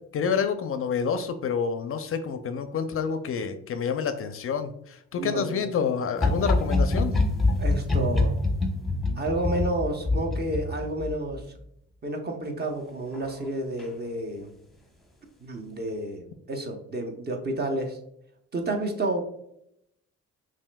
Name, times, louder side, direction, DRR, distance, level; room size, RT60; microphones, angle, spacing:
voice 1, 0.1-7.2, left 6 dB, 50° left, 9 dB, 0.4 m, -28 dB
voice 2, 5.2-5.7 7.6-8.4 9.2-11.4 12.0-14.5 15.4-18.0 18.5-19.2, right 1 dB, 35° right, 3 dB, 0.8 m, -30 dB
sound 1, 6.2-11.4 13.1-13.5 13.8-13.9, left 2 dB, ahead, 0.8 m, -25 dB
5.5 x 2.6 x 2.2 m, 0.76 s
cardioid pair, 90°, 30 cm